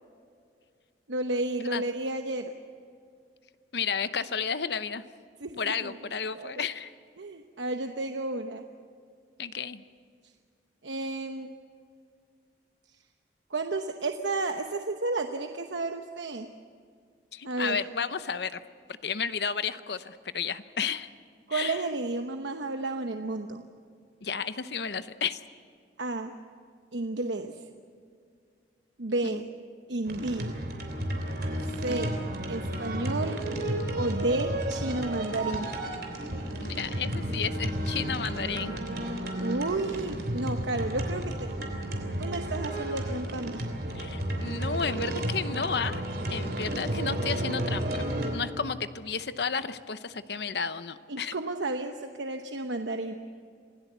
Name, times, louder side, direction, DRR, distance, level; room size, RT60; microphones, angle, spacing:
voice 1, 1.1-2.5 5.4-5.9 6.3-6.6 7.2-8.7 10.8-11.5 13.5-16.5 17.4-17.8 21.5-23.6 26.0-26.3 26.9-27.5 29.0-29.4 29.9-30.5 31.7-32.1 32.5-33.4 34.0-35.7 39.3-41.5 42.2-43.7 51.1-53.1, right 2 dB, 85° right, 6 dB, 1.0 m, -32 dB
voice 2, 3.7-5.0 5.6-6.9 9.4-9.8 17.3-18.6 19.0-21.1 21.5-21.8 24.2-25.4 29.2-29.5 31.9-32.1 36.6-38.7 43.9-46.0 46.3-48.0 48.3-51.3, left 6 dB, 65° left, 13 dB, 0.8 m, -32 dB
sound 1, 30.1-48.3, right 1 dB, 60° right, 3.2 m, -32 dB
26.5 x 17.0 x 8.1 m, 2.2 s
head